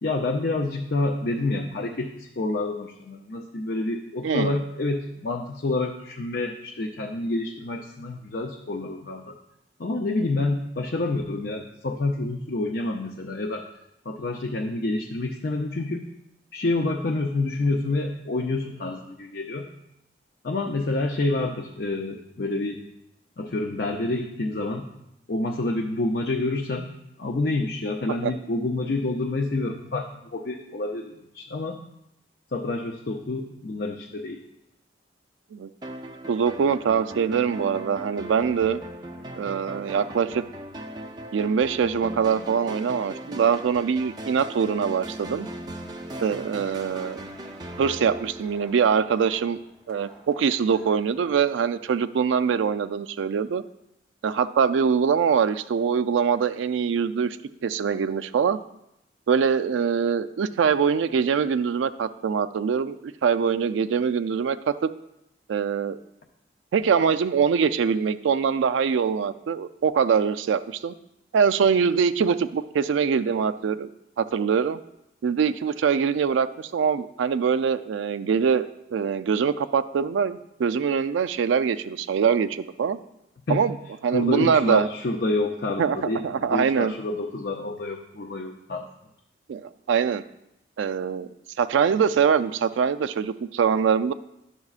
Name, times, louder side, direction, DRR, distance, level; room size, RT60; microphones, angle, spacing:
voice 1, 0.0-9.4 9.8-13.7 14.1-16.1 16.5-19.7 20.4-22.8 23.4-24.9 25.3-26.9 27.2-31.8 32.5-34.4 83.5-83.6 84.1-88.9, left 2 dB, 55° left, 1 dB, 0.5 m, -28 dB
voice 2, 4.2-4.6 28.2-28.3 35.5-35.7 36.3-38.8 39.4-40.4 41.3-45.5 46.2-47.2 47.8-49.6 49.9-53.6 54.2-57.4 57.6-58.6 59.3-64.6 64.8-64.9 65.5-66.0 66.7-70.9 71.3-73.9 74.2-74.8 75.2-83.0 83.5-83.8 84.0-84.9 85.8-86.0 86.2-86.9 89.5-90.2 90.8-91.3 91.6-94.1, right 6 dB, 85° right, 12 dB, 0.3 m, -23 dB
sound 1, 35.8-49.4, right 1 dB, 20° right, 0.4 m, -38 dB
sound 2, 45.4-51.7, equal, 5° left, 1.1 m, -51 dB
11.0 x 6.8 x 2.4 m, 0.84 s
head